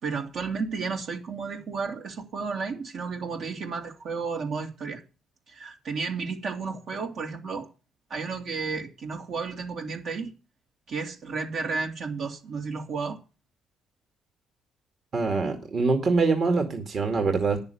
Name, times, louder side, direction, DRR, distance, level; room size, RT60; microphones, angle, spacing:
voice 1, 0.0-5.0 5.5-7.7 8.1-10.3 10.9-13.2, right 4 dB, 65° right, 2.5 m, -32 dB
voice 2, 15.1-17.6, right 4 dB, 45° right, 2.2 m, -24 dB
10.5 x 6.9 x 8.5 m
supercardioid pair, 75°, 0 cm